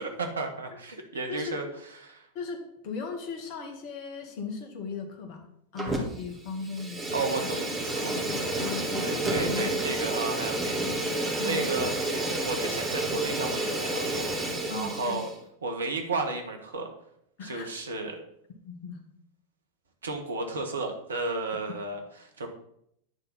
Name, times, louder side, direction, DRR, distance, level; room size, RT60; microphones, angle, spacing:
voice 1, 0.0-2.3 7.1-8.1 9.0-14.1 14.6-15.3 15.6-16.9 17.4-18.2 20.0-22.5, right 3 dB, 70° right, 4 dB, 1.3 m, -33 dB
voice 2, 2.3-7.5 8.1-9.9 10.8-11.0 11.4-11.6 14.7-15.2 17.4-17.7 18.6-19.0, left 5 dB, 45° left, 6 dB, 1.4 m, -38 dB
Fire, 5.8-6.3 6.6-15.3, right 2 dB, 10° right, 1.9 m, -30 dB
9.7 x 4.1 x 5.7 m, 0.73 s
figure-of-eight pair, 90°, 0 cm